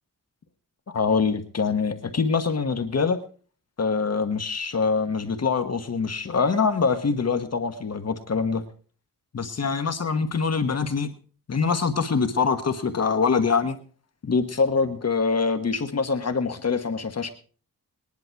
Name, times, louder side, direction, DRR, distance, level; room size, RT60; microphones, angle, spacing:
voice 1, 0.9-3.2 3.8-8.6 9.3-11.1 11.5-13.8 14.2-17.3, left 5 dB, 50° left, 8 dB, 1.3 m, -24 dB
20.5 x 11.0 x 4.6 m, 0.41 s
wide cardioid pair, 110°, 33 cm